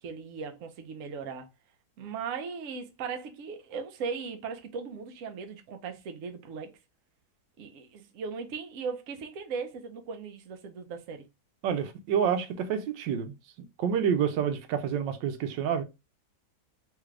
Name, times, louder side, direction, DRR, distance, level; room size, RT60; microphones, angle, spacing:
voice 1, 0.0-1.5 2.0-6.7 7.6-11.3, right 5 dB, 65° right, 0.8 m, -38 dB
voice 2, 11.6-13.3 13.8-15.8, right 8 dB, 85° right, 1.3 m, -28 dB
3.3 x 2.4 x 3.1 m
omnidirectional pair, 1.9 m